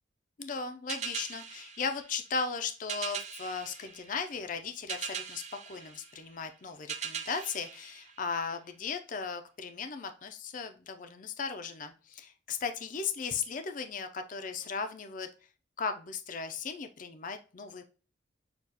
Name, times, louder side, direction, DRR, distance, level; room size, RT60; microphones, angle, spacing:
voice 1, 0.4-15.3 15.8-17.9, left 5 dB, 45° left, 8 dB, 0.4 m, -37 dB
sound 1, 0.9-8.8, right 7 dB, 40° right, 0.6 m, -42 dB
6.6 x 2.4 x 2.8 m, 0.36 s
head